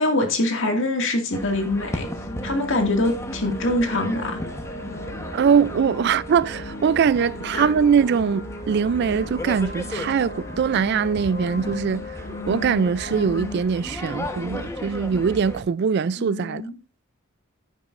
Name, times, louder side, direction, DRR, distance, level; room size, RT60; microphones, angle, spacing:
voice 1, 0.0-2.1 2.4-4.4 7.5-7.7 16.2-16.7, left 2 dB, 60° left, 2.0 m, -24 dB
sound 1, 1.3-15.6, left 1 dB, 15° left, 1.0 m, -35 dB
sound 2, 1.8-13.6, left 1 dB, 30° left, 3.4 m, -37 dB
voice 2, 5.3-16.6, right 6 dB, 50° right, 0.3 m, -22 dB
10.0 x 9.9 x 2.5 m
head